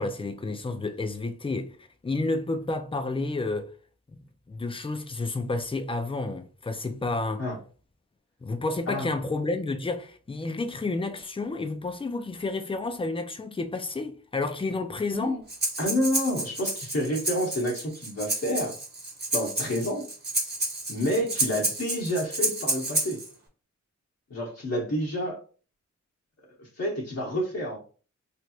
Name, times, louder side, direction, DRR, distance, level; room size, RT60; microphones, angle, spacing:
voice 1, 0.0-1.8 2.0-3.7 4.5-7.4 8.4-15.4, left 3 dB, 20° left, 0.4 m, -30 dB
Breathing, 15.5-23.3, right 2 dB, 30° right, 1.1 m, -30 dB
voice 2, 15.8-18.8 19.3-20.1 20.9-23.2 24.3-25.4 26.6-27.8, equal, 55° left, 1.0 m, -29 dB
3.2 x 2.9 x 2.4 m
wide cardioid pair, 80°, 31 cm